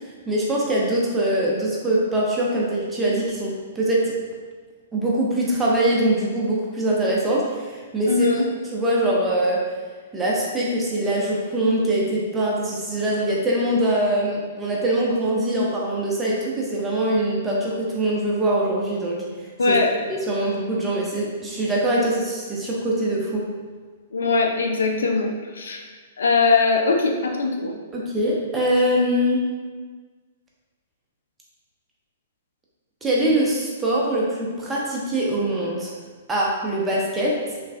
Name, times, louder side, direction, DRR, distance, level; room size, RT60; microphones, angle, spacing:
voice 1, 0.3-4.1 4.9-8.3 8.7-9.6 10.1-19.2 19.7-19.8 20.1-23.4 27.9-29.4 33.0-35.9 36.3-37.3, right 1 dB, 15° right, -5 dB, 0.6 m, -23 dB
voice 2, 8.1-8.4 19.6-19.9 24.1-25.8 26.2-27.7, left 4 dB, 70° left, 2 dB, 0.4 m, -21 dB
3.1 x 2.2 x 2.5 m, 1.5 s
figure-of-eight pair, 115°, 0 cm